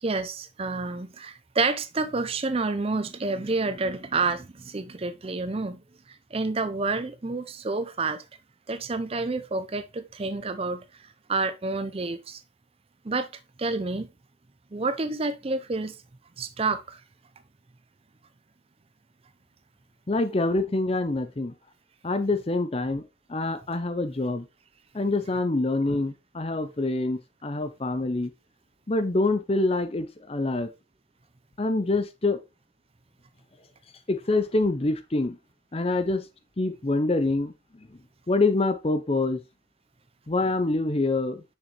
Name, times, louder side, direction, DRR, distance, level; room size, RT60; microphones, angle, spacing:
voice 1, 0.0-5.8 6.3-8.2 8.7-10.8 11.3-12.4 13.0-13.3 13.6-14.1 14.7-15.9 16.4-17.0, right 3 dB, 30° right, 0.5 m, -29 dB
voice 2, 20.1-21.5 22.0-23.0 23.3-24.5 24.9-28.3 28.9-30.7 31.6-32.4 34.1-35.4 35.7-36.3 36.6-37.5 38.3-39.4 40.3-41.4, left 2 dB, 30° left, 0.6 m, -25 dB
6.5 x 6.3 x 3.0 m
head